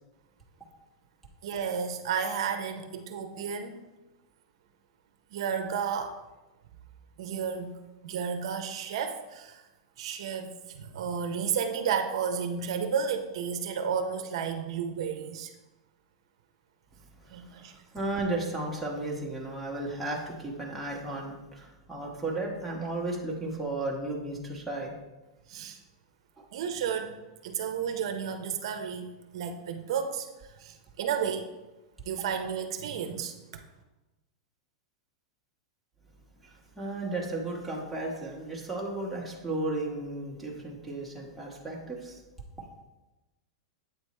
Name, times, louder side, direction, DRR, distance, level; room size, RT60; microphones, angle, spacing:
voice 1, 1.4-3.8 5.3-6.2 7.2-7.7 8.0-9.6 10.0-15.5 17.3-17.7 25.5-25.8 26.5-27.1 27.4-31.5 32.0-33.6, right 7 dB, 65° right, 6 dB, 0.7 m, -32 dB
voice 2, 17.2-24.9 26.4-26.5 36.4-42.2, right 2 dB, ahead, -5 dB, 1.1 m, -34 dB
8.2 x 3.4 x 4.2 m, 1.1 s
supercardioid pair, 160°, 3 cm